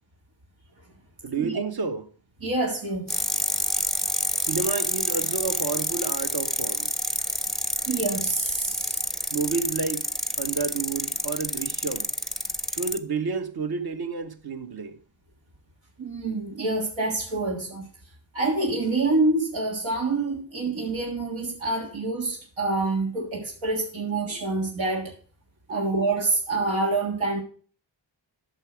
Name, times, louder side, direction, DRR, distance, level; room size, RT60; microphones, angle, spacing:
voice 1, 1.2-2.1 4.4-6.9 9.3-10.1 10.4-12.1 12.7-15.0 24.1-24.2 25.7-25.9, right 4 dB, 55° right, 1.1 m, -30 dB
voice 2, 2.4-3.2 7.9-9.0 16.0-17.8 18.3-25.1 25.7-27.4, right 3 dB, 85° right, 1.7 m, -26 dB
sound 1, 3.1-13.0, left 1 dB, ahead, 0.6 m, -28 dB
9.0 x 6.1 x 4.9 m
cardioid pair, 45°, 45 cm